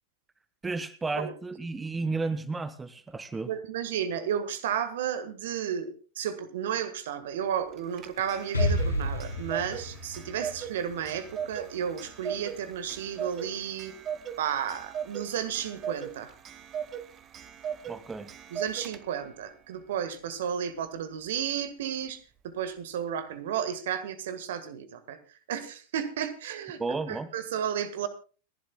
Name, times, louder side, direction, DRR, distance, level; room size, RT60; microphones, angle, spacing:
voice 1, 0.6-3.5 17.9-18.3 26.8-27.3, right 3 dB, 10° right, 15 dB, 0.7 m, -32 dB
voice 2, 3.4-13.9 14.4-16.3 18.5-25.2 25.5-26.8 27.1-28.1, right 9 dB, 55° right, 12 dB, 1.5 m, -33 dB
Clock, 7.7-19.3, right 8 dB, 30° right, 1.1 m, -39 dB
Explosion, 8.5-12.3, left 1 dB, 80° left, 3.7 m, -31 dB
29.5 x 11.5 x 2.2 m, 0.36 s
figure-of-eight pair, 90°, 0 cm